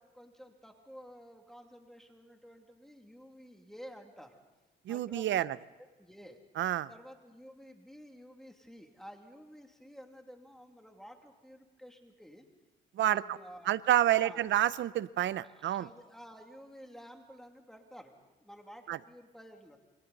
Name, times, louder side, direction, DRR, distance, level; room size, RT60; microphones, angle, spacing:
voice 1, 0.0-4.4 4.9-5.6 6.0-6.4 6.9-12.5 13.0-13.8 14.1-14.5 15.4-19.8, equal, ahead, 3 dB, 2.6 m, -52 dB
voice 2, 4.9-5.6 6.6-6.9 13.0-13.2 13.7-15.9 18.9-19.0, right 12 dB, 70° right, 17 dB, 0.7 m, -28 dB
28.5 x 24.0 x 4.1 m, 1.2 s
cardioid pair, 90°, 20 cm